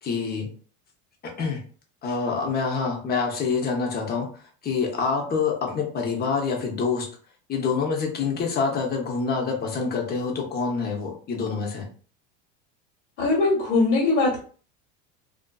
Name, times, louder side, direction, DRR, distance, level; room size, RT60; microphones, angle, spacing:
voice 1, 0.0-0.5 1.2-1.6 2.0-4.3 4.6-7.1 7.5-11.9, left 5 dB, 30° left, 1 dB, 0.8 m, -26 dB
voice 2, 13.2-14.4, left 3 dB, 90° left, -5 dB, 1.2 m, -21 dB
2.5 x 2.4 x 2.2 m, 0.42 s
supercardioid pair, 115°, 33 cm